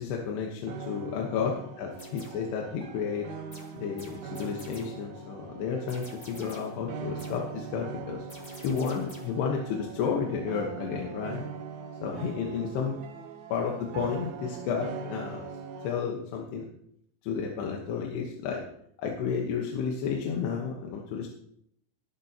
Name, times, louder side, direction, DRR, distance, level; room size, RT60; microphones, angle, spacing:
voice 1, 0.0-3.3 3.8-8.3 8.6-11.4 12.0-13.0 13.5-15.5 15.8-16.7 17.2-18.6 19.0-21.3, left 6 dB, 75° left, 0 dB, 3.3 m, -32 dB
sound 1, 0.7-16.1, right 5 dB, 75° right, 1.8 m, -41 dB
sound 2, 1.9-2.5 3.5-5.1 5.9-6.8 7.2-7.5 8.3-9.5, left 1 dB, 15° left, 1.2 m, -49 dB
19.0 x 10.5 x 2.9 m, 0.72 s
omnidirectional pair, 4.9 m